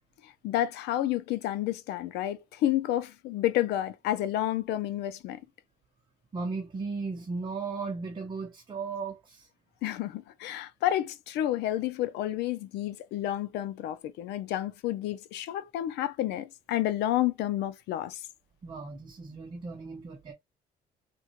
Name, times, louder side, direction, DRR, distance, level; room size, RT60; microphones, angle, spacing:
voice 1, 0.2-5.4 9.8-18.2, left 13 dB, 80° left, 0.5 m, -30 dB
voice 2, 6.3-9.5 18.6-20.3, right 4 dB, 30° right, 0.7 m, -36 dB
3.6 x 2.2 x 2.9 m
cardioid pair, 110°, 17 cm